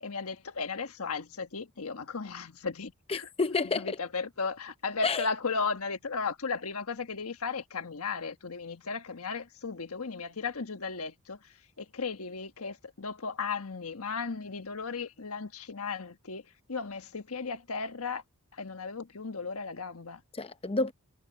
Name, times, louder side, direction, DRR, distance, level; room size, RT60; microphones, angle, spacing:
voice 1, 0.0-3.3 3.6-11.4 11.8-16.4 16.7-18.2 18.5-20.2, left 4 dB, 75° left, 1.4 m, -35 dB
voice 2, 3.1-4.0 5.0-5.3 20.3-20.9, left 3 dB, 25° left, 0.7 m, -29 dB
head